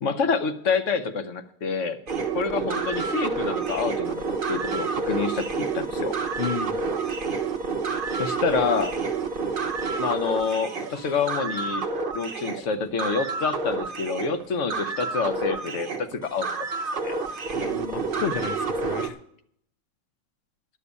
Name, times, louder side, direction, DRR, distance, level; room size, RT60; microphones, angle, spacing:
voice 1, 0.0-2.0 2.3-6.1 8.2-9.0 10.0-11.9 12.1-16.5 16.9-17.1, left 5 dB, 50° left, 9 dB, 1.1 m, -27 dB
sound 1, 2.1-19.1, right 4 dB, 40° right, 0.7 m, -29 dB
voice 2, 6.4-6.8 17.5-19.2, left 8 dB, 80° left, 13 dB, 0.6 m, -32 dB
11.0 x 6.7 x 8.2 m, 0.67 s
omnidirectional pair, 2.0 m